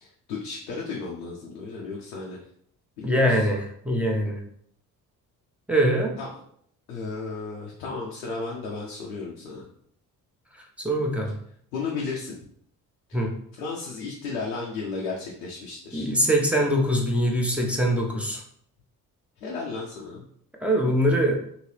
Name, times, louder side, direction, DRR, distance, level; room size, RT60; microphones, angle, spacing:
voice 1, 0.0-2.4 3.0-3.5 6.2-6.3 6.9-9.6 11.7-12.4 13.1-13.2 13.6-16.1 19.4-20.2, left 4 dB, 90° left, -3 dB, 0.6 m, -34 dB
voice 2, 3.0-4.4 5.7-6.1 10.8-11.3 13.1-13.3 15.9-18.4 20.6-21.4, equal, 5° right, -1 dB, 0.8 m, -23 dB
2.8 x 2.7 x 3.2 m, 0.65 s
hypercardioid pair, 50°, 45 cm